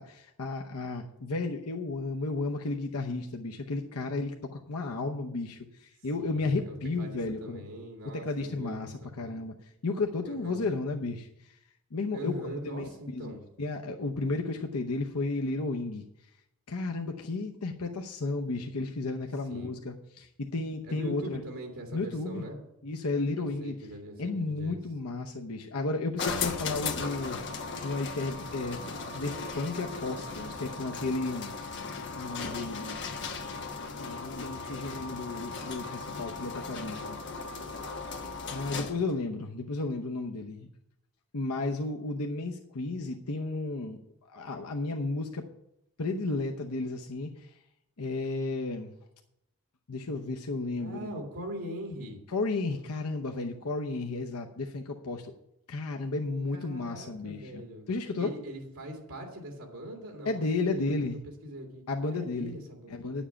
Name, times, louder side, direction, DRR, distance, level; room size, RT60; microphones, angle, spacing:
voice 1, 0.0-7.6 8.1-9.5 9.8-11.6 11.9-16.0 16.7-21.4 21.9-22.4 22.8-23.7 24.2-27.4 27.8-31.5 32.1-33.2 33.9-37.2 38.5-40.7 41.3-44.0 44.3-45.5 46.0-47.6 48.0-48.9 49.9-51.1 52.3-55.3 55.7-57.6 57.9-58.3 60.2-61.2 61.9-62.5 62.9-63.3, left 3 dB, 85° left, 2 dB, 0.8 m, -33 dB
voice 2, 6.2-9.4 10.2-10.6 12.1-13.4 19.5-19.7 20.8-22.6 23.4-24.8 50.8-52.2 56.5-60.9 61.4-63.3, equal, 75° right, 0 dB, 2.5 m, -42 dB
sound 1, 26.2-39.1, left 4 dB, 55° left, 1.1 m, -37 dB
10.0 x 7.2 x 7.1 m, 0.82 s
head